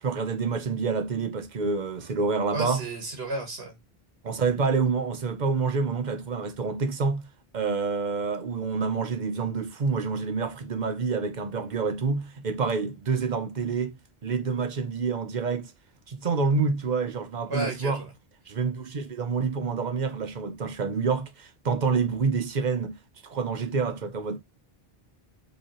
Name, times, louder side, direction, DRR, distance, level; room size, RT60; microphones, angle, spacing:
voice 1, 0.0-2.8 4.2-7.3 7.5-13.9 14.2-15.7 16.1-18.0 18.5-23.0 23.2-24.4, right 4 dB, 50° right, 0.9 m, -27 dB
voice 2, 2.5-3.7 17.5-18.1, right 2 dB, 75° right, 1.5 m, -32 dB
5.0 x 3.1 x 3.0 m
omnidirectional pair, 1.0 m